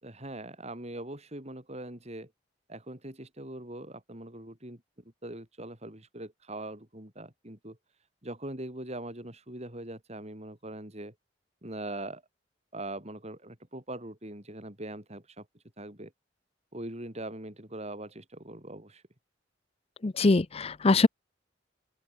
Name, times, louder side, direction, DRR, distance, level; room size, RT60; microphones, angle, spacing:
voice 1, 0.0-2.3 2.7-4.8 5.2-7.8 8.2-11.1 11.6-12.2 12.7-15.5 15.8-16.1 16.7-19.0, right 1 dB, 35° right, 5.8 m, -41 dB
voice 2, 20.0-21.1, left 3 dB, 35° left, 0.6 m, -23 dB
open air
head